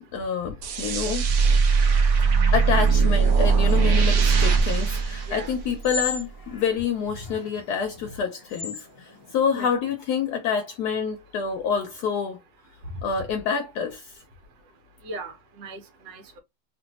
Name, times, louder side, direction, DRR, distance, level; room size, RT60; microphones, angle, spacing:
voice 1, 0.1-1.3 2.5-12.4 13.0-14.2, left 6 dB, 75° left, 1.0 m, -27 dB
sound 1, 0.6-6.0, right 5 dB, 65° right, 1.1 m, -20 dB
sound 2, 3.7-9.7, left 4 dB, 40° left, 0.9 m, -38 dB
voice 2, 15.0-16.4, right 1 dB, 85° right, 1.4 m, -37 dB
3.1 x 2.5 x 2.8 m
omnidirectional pair, 1.9 m